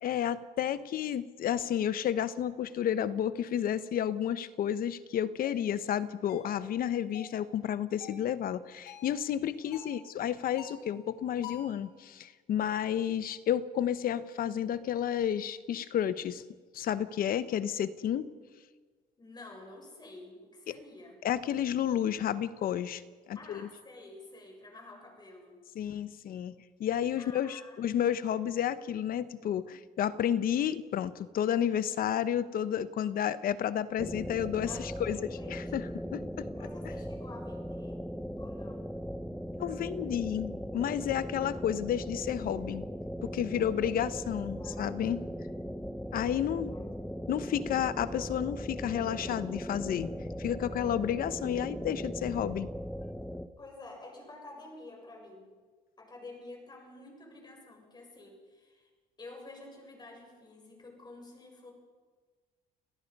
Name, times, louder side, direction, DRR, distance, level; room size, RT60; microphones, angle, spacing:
voice 1, 0.0-16.4 16.7-18.3 20.7-20.8 21.2-23.0 23.3-23.7 25.7-26.5 26.8-35.9 36.1-36.2 39.6-42.9 43.2-45.2 46.1-46.7 47.3-50.1 50.4-52.7, left 10 dB, 60° left, 15 dB, 1.0 m, -31 dB
sound 1, 5.4-5.6 6.3-6.5 7.1-7.4 8.0-8.3 8.9-9.2 9.7-10.0 10.6-10.9 11.4-11.8, left 9 dB, 75° left, 3.0 m, -47 dB
voice 2, 19.2-21.2 23.3-25.6 27.2-27.8 34.7-36.1 36.5-38.0 38.4-38.9 43.4-43.9 44.6-45.2 46.3-46.9 53.6-55.5 56.0-58.9 59.2-61.7, left 2 dB, 25° left, 1 dB, 7.0 m, -50 dB
sound 2, 34.0-53.5, equal, 5° left, 0.9 m, -39 dB
30.0 x 18.0 x 5.4 m, 1.4 s
cardioid pair, 110°, 17 cm